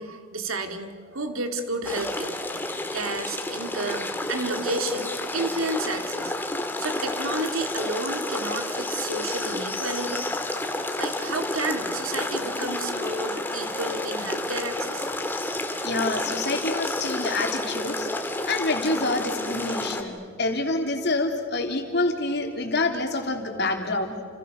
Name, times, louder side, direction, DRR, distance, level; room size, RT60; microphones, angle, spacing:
voice 1, 0.0-6.3 6.8-10.2 11.0-15.1, right 2 dB, 75° right, 7 dB, 2.5 m, -31 dB
sound 1, 1.8-20.0, left 1 dB, 10° left, 1.9 m, -30 dB
voice 2, 15.8-18.1 18.5-24.2, left 2 dB, 50° left, 4 dB, 3.3 m, -27 dB
30.0 x 28.5 x 6.6 m, 2.1 s
head